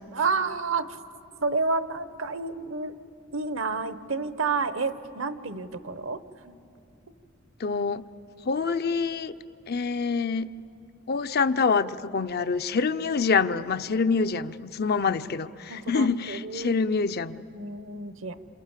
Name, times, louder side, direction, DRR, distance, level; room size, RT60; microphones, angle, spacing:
voice 1, 0.1-1.0 1.4-2.9 3.3-6.5 15.1-15.2 15.7-16.7 17.5-18.3, right 4 dB, 65° right, 12 dB, 1.0 m, -30 dB
voice 2, 7.6-8.0 8.4-9.3 9.7-10.5 11.1-17.4, left 5 dB, 50° left, 11 dB, 0.6 m, -26 dB
27.5 x 27.5 x 7.4 m, 2.6 s
head